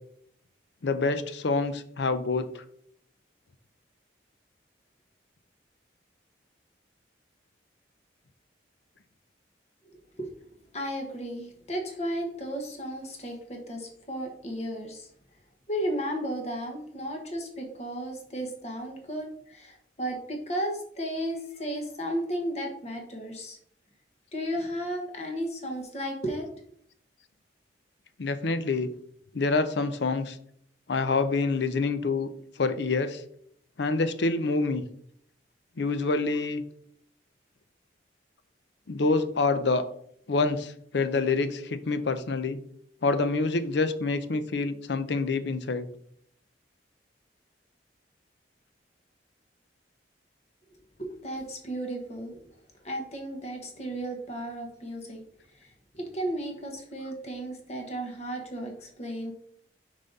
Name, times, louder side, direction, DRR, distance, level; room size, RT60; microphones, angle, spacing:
voice 1, 0.8-2.5 28.2-28.9 29.3-30.4 30.9-32.3 32.6-33.2 33.8-34.8 35.8-36.6 38.9-39.8 40.3-42.6 43.0-45.9, left 3 dB, 70° left, 11 dB, 0.6 m, -26 dB
voice 2, 9.8-10.3 10.7-15.1 15.7-23.6 24.3-26.6 51.0-52.4 52.8-55.2 55.5-59.3, equal, 35° left, 2 dB, 1.3 m, -34 dB
5.6 x 5.1 x 4.0 m, 0.66 s
head